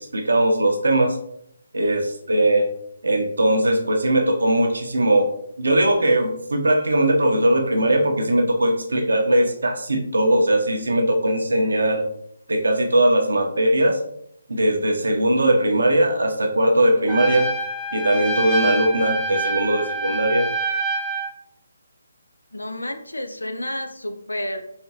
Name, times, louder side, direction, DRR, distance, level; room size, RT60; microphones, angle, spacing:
voice 1, 0.1-1.2 1.7-2.7 3.0-5.3 5.6-12.0 12.5-14.0 14.5-17.5 17.9-20.5, right 1 dB, 70° right, 3 dB, 0.8 m, -19 dB
Trumpet, 17.1-21.3, right 2 dB, 5° left, 0.6 m, -26 dB
voice 2, 22.5-24.6, left 1 dB, 85° left, 7 dB, 0.6 m, -30 dB
4.1 x 3.6 x 2.9 m, 0.72 s
figure-of-eight pair, 145°, 0 cm